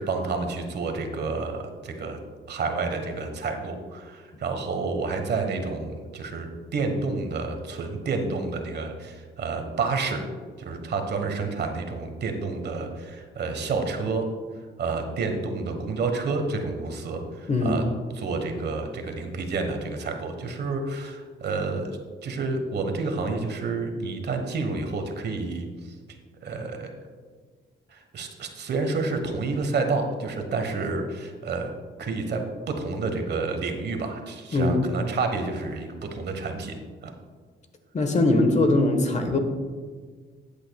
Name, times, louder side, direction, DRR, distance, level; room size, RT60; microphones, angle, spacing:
voice 1, 0.0-2.2 2.5-10.2 10.6-14.2 14.8-17.8 18.1-21.9 22.2-26.0 26.4-26.9 27.9-31.7 32.0-36.7 37.0-37.1, right 3 dB, 55° right, 5 dB, 1.3 m, -29 dB
voice 2, 34.5-34.8 37.9-39.4, left 2 dB, 35° left, 6 dB, 1.3 m, -21 dB
13.5 x 8.6 x 2.3 m, 1.6 s
cardioid pair, 90°, 20 cm